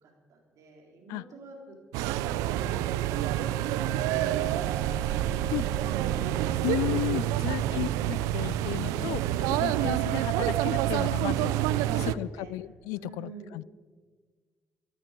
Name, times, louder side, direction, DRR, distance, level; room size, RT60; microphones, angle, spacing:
voice 1, 0.0-3.6 4.6-6.5 7.2-7.7 8.8-9.6 11.8-12.5 13.0-13.6, right 3 dB, 70° right, 1 dB, 3.8 m, -46 dB
sound 1, 1.9-12.2, right 13 dB, 85° right, 0.4 m, -28 dB
Wind instrument woodwind instrument, 2.6-7.2, right 2 dB, 20° left, 1.5 m, -43 dB
voice 2, 6.6-9.2 9.5-11.5 12.1-13.6, left 17 dB, 85° left, 22 dB, 0.3 m, -34 dB
14.5 x 14.0 x 5.3 m, 1.5 s
supercardioid pair, 60°, 6 cm